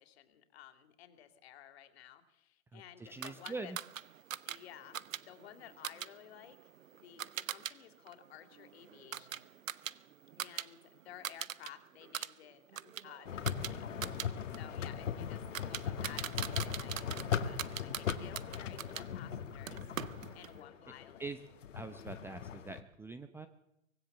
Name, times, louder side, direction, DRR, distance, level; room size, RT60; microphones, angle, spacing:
voice 1, 0.0-3.7 4.4-5.0 5.3-9.5 10.4-13.9 14.5-21.3, left 11 dB, 50° left, 9 dB, 3.2 m, -54 dB
voice 2, 2.7-3.8 21.2-21.4 21.7-23.5, right 3 dB, 5° right, 10 dB, 0.8 m, -44 dB
sound 1, 3.2-7.7 8.1-10.7 11.0-11.7 12.0-19.1 19.7-20.6, right 9 dB, 70° right, 1.1 m, -42 dB
sound 2, 13.3-22.8, left 8 dB, 65° left, 2.2 m, -39 dB
24.5 x 19.0 x 7.3 m, 0.83 s
hypercardioid pair, 125°, 40 cm